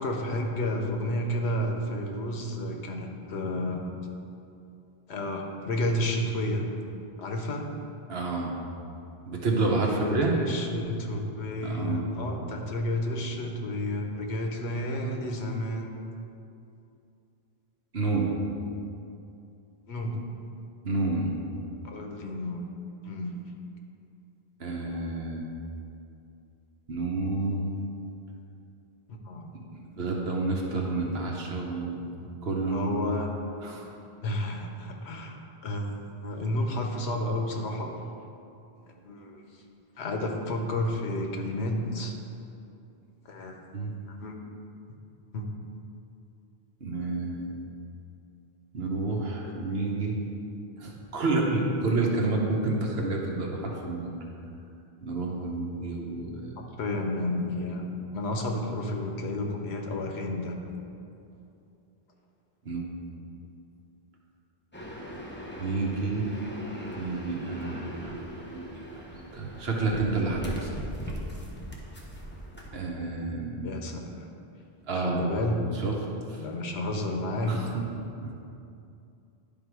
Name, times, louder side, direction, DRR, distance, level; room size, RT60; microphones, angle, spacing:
voice 1, 0.0-3.8 5.1-6.6 7.2-7.6 9.8-15.9 19.9-20.1 21.8-22.6 23.0-23.3 29.2-29.5 32.7-33.3 34.2-35.4 35.6-35.9 36.2-37.9 39.0-39.4 40.0-42.1 43.2-43.6 44.2-44.3 45.3-45.4 56.8-57.9 58.1-60.6 73.6-74.3 74.9-75.6 76.3-77.5, left 1 dB, 90° left, 2 dB, 1.1 m, -31 dB
voice 2, 8.1-8.5 9.2-10.3 11.6-12.1 17.9-18.3 20.8-21.3 24.6-25.6 26.9-27.7 29.5-32.1 32.4-32.9 33.6-33.8 43.7-43.9 46.8-47.6 48.7-50.2 50.8-54.1 55.0-56.6 62.6-62.9 65.6-66.3 67.0-68.1 68.5-68.6 68.9-69.0 69.3-70.7 72.7-73.7 74.9-75.3 75.7-76.0 76.3-76.4 77.5-77.8 78.2-78.3, right 3 dB, 70° right, -1 dB, 1.2 m, -29 dB
sound 1, 64.7-72.7, equal, 10° left, 0.8 m, -39 dB
10.5 x 3.6 x 4.7 m, 2.6 s
omnidirectional pair, 1.1 m